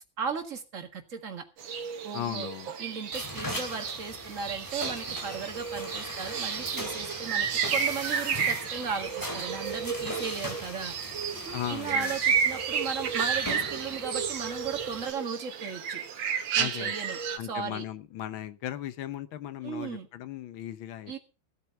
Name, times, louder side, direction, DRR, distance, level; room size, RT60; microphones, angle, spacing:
voice 1, 0.2-1.5 2.0-2.5 2.8-10.9 11.5-16.0 16.5-17.8 19.6-20.1 21.1-21.2, right 6 dB, 40° right, 6 dB, 2.1 m, -36 dB
sound 1, 1.6-17.4, right 7 dB, 75° right, 2.0 m, -32 dB
voice 2, 2.1-2.7 11.5-12.1 16.6-16.9 17.4-21.1, left 11 dB, 80° left, 14 dB, 1.7 m, -37 dB
sound 2, 3.1-15.1, left 1 dB, 10° left, 2.6 m, -39 dB
15.5 x 8.3 x 5.6 m, 0.33 s
omnidirectional pair, 2.2 m